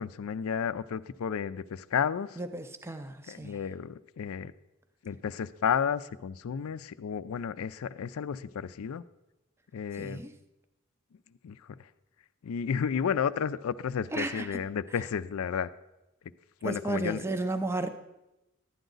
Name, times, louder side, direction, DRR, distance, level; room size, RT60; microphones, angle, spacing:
voice 1, 0.0-2.4 3.3-4.5 5.0-9.0 9.7-10.2 11.4-11.9 12.4-15.7 16.6-17.2, left 7 dB, 75° left, 14 dB, 0.4 m, -32 dB
voice 2, 2.4-3.6 9.9-10.3 14.1-14.6 16.6-17.9, right 2 dB, 10° right, 9 dB, 0.4 m, -33 dB
12.0 x 9.0 x 3.9 m, 0.96 s
head